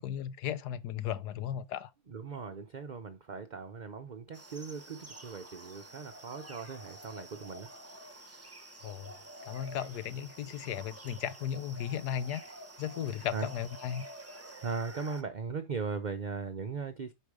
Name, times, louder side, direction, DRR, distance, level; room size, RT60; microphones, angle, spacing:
voice 1, 0.0-1.9 8.8-9.1 9.5-12.4 12.8-14.0, left 9 dB, 80° left, 1.3 m, -36 dB
voice 2, 2.1-7.7 13.3-13.5 14.6-17.1, right 5 dB, 45° right, 0.6 m, -38 dB
sound 1, 4.3-15.2, right 1 dB, 10° right, 0.8 m, -49 dB
8.4 x 5.6 x 4.8 m
omnidirectional pair, 1.7 m